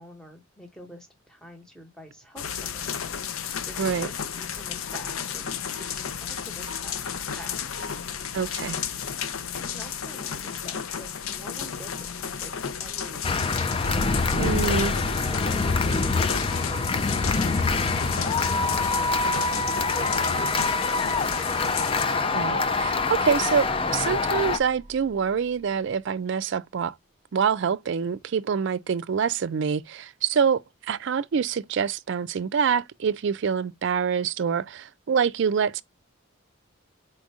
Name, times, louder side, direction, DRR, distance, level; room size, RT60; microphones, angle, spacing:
voice 1, 0.0-2.9 3.7-7.6 9.6-12.5 12.8-13.7 17.5-18.9 19.9-21.5, equal, 5° left, 1.2 m, -47 dB
sound 1, 2.4-22.0, left 7 dB, 75° left, 0.6 m, -33 dB
voice 2, 8.3-8.8 14.4-14.9 22.3-26.9 27.3-30.6 30.9-35.8, right 6 dB, 55° right, 0.4 m, -26 dB
sound 2, 13.2-24.6, left 3 dB, 25° left, 0.4 m, -25 dB
sound 3, 13.8-26.0, right 1 dB, 30° right, 1.3 m, -41 dB
4.4 x 2.5 x 4.8 m
head